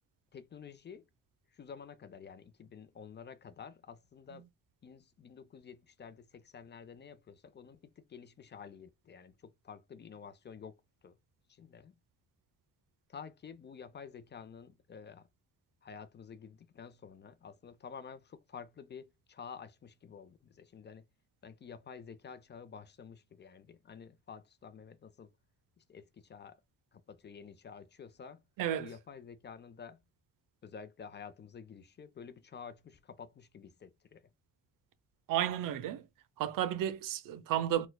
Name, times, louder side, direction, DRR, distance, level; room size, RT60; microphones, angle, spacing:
voice 1, 0.3-1.1 1.5-4.5 4.8-11.2 11.5-11.9 13.1-15.3 15.8-21.1 21.4-25.3 25.8-26.6 26.9-28.4 28.8-30.0 30.6-34.3, left 6 dB, 30° left, 0.5 m, -50 dB
voice 2, 28.6-28.9 35.3-36.1 36.4-37.9, right 11 dB, 75° right, 0.6 m, -32 dB
4.2 x 2.2 x 2.3 m
cardioid pair, 100°, 33 cm